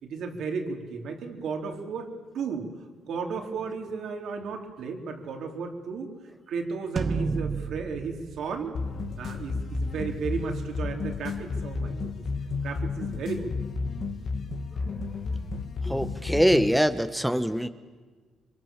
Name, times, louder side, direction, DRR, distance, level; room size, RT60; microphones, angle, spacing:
voice 1, 0.0-2.7 3.1-6.1 6.5-8.7 9.2-12.1 12.6-13.5, right 5 dB, 70° right, 3 dB, 3.9 m, -34 dB
sound 1, 7.0-9.5, right 4 dB, 40° right, 1.0 m, -32 dB
sound 2, 8.7-16.8, left 4 dB, 55° left, 2.0 m, -32 dB
voice 2, 15.8-17.7, equal, ahead, 10 dB, 1.1 m, -24 dB
28.0 x 24.0 x 7.4 m, 1.4 s
cardioid pair, 90°, 0 cm